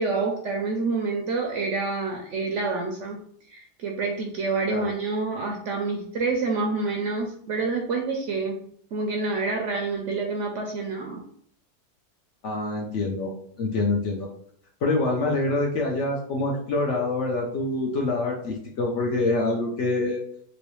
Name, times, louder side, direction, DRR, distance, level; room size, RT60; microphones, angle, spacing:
voice 1, 0.0-3.2 3.5-8.6 8.9-11.2, right 3 dB, 70° right, 1 dB, 0.7 m, -27 dB
voice 2, 12.4-13.3 13.6-14.3 14.8-20.2, left 2 dB, 65° left, 0 dB, 0.7 m, -25 dB
3.1 x 2.9 x 3.0 m, 0.64 s
omnidirectional pair, 1.7 m